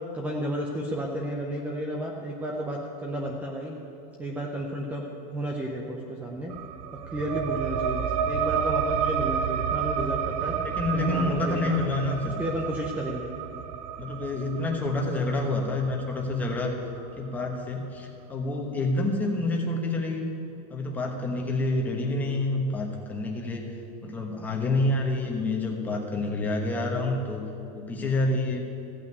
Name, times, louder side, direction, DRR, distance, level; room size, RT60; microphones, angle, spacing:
voice 1, 0.1-3.8 4.2-6.5 7.1-10.6 10.9-11.8 12.4-13.3, right 1 dB, 5° right, -1 dB, 0.6 m, -32 dB
sound 1, 6.5-17.6, right 7 dB, 65° right, 0.7 m, -31 dB
voice 2, 10.4-12.4 14.0-16.7 17.2-20.3 20.7-23.7 24.0-27.4 27.7-28.7, left 2 dB, 10° left, -1 dB, 1.2 m, -28 dB
15.5 x 5.8 x 9.3 m, 2.9 s
supercardioid pair, 180°, 21 cm